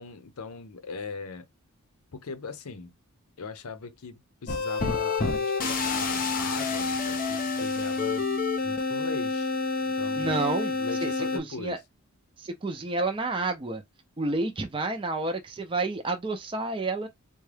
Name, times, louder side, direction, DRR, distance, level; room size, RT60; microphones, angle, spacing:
voice 1, 0.0-1.5 2.1-2.9 3.4-8.3 8.6-9.5 9.8-10.4 10.8-11.8, left 4 dB, 75° left, 0.6 m, -39 dB
sound 1, 4.5-11.4, left 4 dB, 40° left, 0.7 m, -28 dB
voice 2, 10.2-10.8 11.0-11.8 12.4-13.8 14.2-17.1, right 3 dB, 20° right, 0.5 m, -30 dB
3.6 x 2.2 x 3.3 m
head